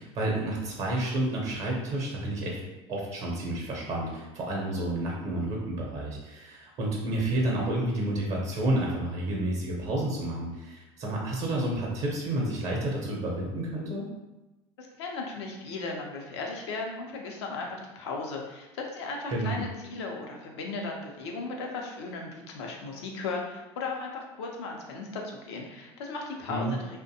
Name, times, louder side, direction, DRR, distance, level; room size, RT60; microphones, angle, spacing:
voice 1, 0.0-2.6 2.9-14.0 19.3-19.6 26.5-26.8, right 1 dB, 55° right, -2 dB, 0.6 m, -30 dB
voice 2, 14.8-26.8, left 3 dB, 85° left, 1 dB, 0.5 m, -36 dB
2.5 x 2.1 x 2.7 m, 1.0 s
hypercardioid pair, 80°, 14 cm